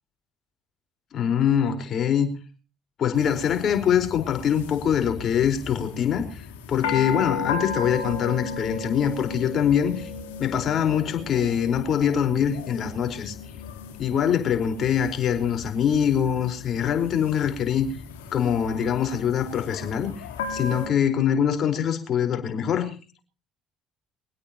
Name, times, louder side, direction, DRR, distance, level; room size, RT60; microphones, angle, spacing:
voice 1, 1.1-2.3 3.0-10.1 10.4-13.3 14.0-17.9 18.3-22.9, left 8 dB, 50° left, 4.6 m, -24 dB
sound 1, 3.1-20.9, left 5 dB, 75° left, 3.5 m, -35 dB
24.5 x 17.0 x 3.0 m
hypercardioid pair, 55°, 0 cm